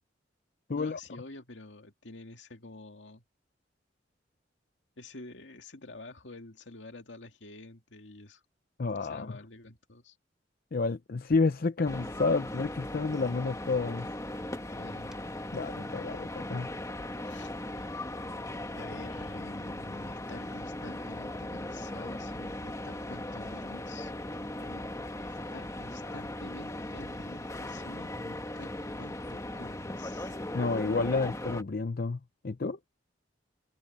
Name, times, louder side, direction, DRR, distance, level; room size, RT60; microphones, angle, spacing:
voice 1, 0.7-3.2 5.0-8.4 9.0-10.2 14.7-15.2 17.2-17.5 18.7-24.1 24.6-24.9 25.2-30.3, left 2 dB, 80° left, 2.2 m, -48 dB
voice 2, 8.8-9.3 10.7-14.1 15.5-16.7 30.5-32.8, left 3 dB, 55° left, 0.6 m, -30 dB
sound 1, 11.3-11.5 11.8-12.3 13.4-14.7 15.1-15.2 16.3-16.6 17.0-17.2 17.7-18.1 18.4-20.0, equal, 5° right, 3.8 m, -55 dB
sound 2, 11.9-31.6, left 1 dB, 15° left, 1.5 m, -38 dB
head